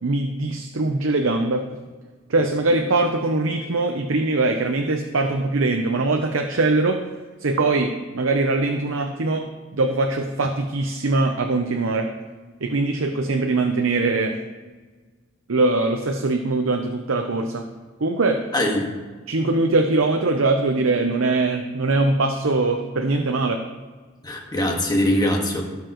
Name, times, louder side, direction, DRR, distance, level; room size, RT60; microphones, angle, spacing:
voice 1, 0.0-1.7 2.3-7.0 7.4-9.5 9.7-12.1 12.6-14.4 15.5-17.6 18.0-18.5 19.3-23.7, right 2 dB, 90° right, 4 dB, 0.8 m, -22 dB
voice 2, 18.5-18.9 24.2-25.7, left 1 dB, 20° left, 0 dB, 1.7 m, -22 dB
17.0 x 6.8 x 3.1 m, 1.4 s
head